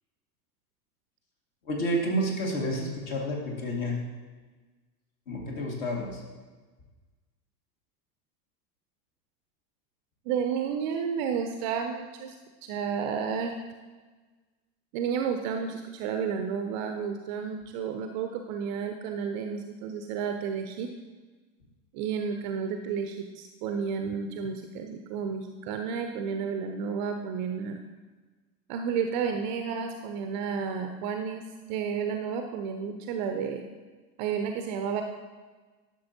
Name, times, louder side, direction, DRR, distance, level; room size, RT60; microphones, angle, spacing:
voice 1, 1.7-4.0 5.3-6.2, equal, 50° left, -1 dB, 2.1 m, -30 dB
voice 2, 10.3-12.4 12.6-13.6 14.9-20.9 21.9-27.8 28.7-33.6 34.2-35.0, right 6 dB, 30° right, 6 dB, 0.4 m, -31 dB
11.5 x 6.5 x 2.8 m, 1.3 s
figure-of-eight pair, 80°, 50 cm